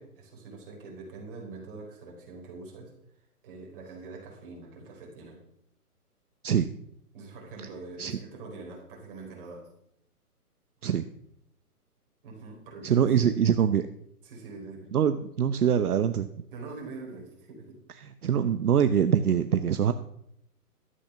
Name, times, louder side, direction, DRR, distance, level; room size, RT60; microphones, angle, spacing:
voice 1, 0.0-2.9 3.4-5.4 7.1-9.7 12.2-13.2 14.2-14.9 16.5-17.8, right 3 dB, 35° right, 0 dB, 4.5 m, -44 dB
voice 2, 12.8-13.8 14.9-16.3 18.2-19.9, right 8 dB, 70° right, 11 dB, 0.9 m, -24 dB
12.5 x 8.3 x 5.8 m, 0.75 s
hypercardioid pair, 150°, 46 cm